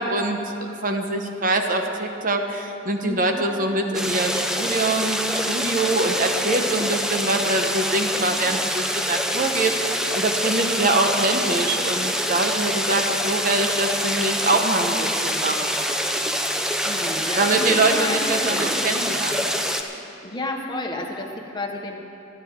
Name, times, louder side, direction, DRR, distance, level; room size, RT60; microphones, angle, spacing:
voice 1, 0.0-15.7 17.4-19.5, right 2 dB, 45° right, 4 dB, 0.9 m, -24 dB
voice 2, 3.0-3.5 16.9-18.7 20.2-22.0, left 1 dB, 20° left, 2 dB, 1.2 m, -31 dB
sound 1, 3.9-19.8, equal, 5° right, 0.7 m, -25 dB
26.5 x 10.5 x 3.6 m, 2.9 s
head